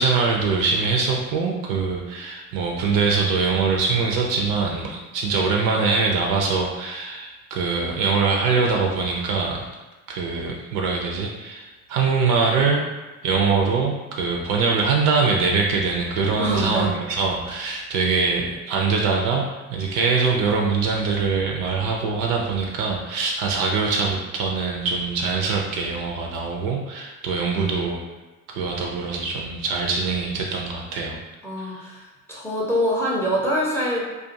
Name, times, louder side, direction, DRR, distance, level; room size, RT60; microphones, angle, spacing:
voice 1, 0.0-9.7 10.1-12.8 13.2-19.4 19.7-28.0 28.5-31.2 31.6-31.9, right 4 dB, 50° right, 0 dB, 0.5 m, -23 dB
voice 2, 16.4-16.9 31.4-32.0 32.3-34.1, equal, 5° left, -5 dB, 0.5 m, -24 dB
2.4 x 2.3 x 2.5 m, 1.2 s
figure-of-eight pair, 60°, 45 cm